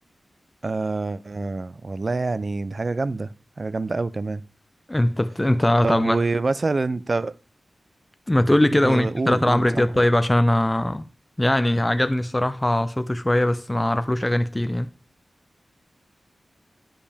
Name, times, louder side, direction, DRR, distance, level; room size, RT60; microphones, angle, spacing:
voice 1, 0.6-3.3 3.6-4.4 5.8-7.3 8.7-9.9, right 3 dB, 45° right, 0.4 m, -26 dB
voice 2, 4.9-6.2 8.3-11.0 11.4-14.9, left 1 dB, 15° left, 0.4 m, -21 dB
8.8 x 5.1 x 3.3 m
wide cardioid pair, 65°, 0 cm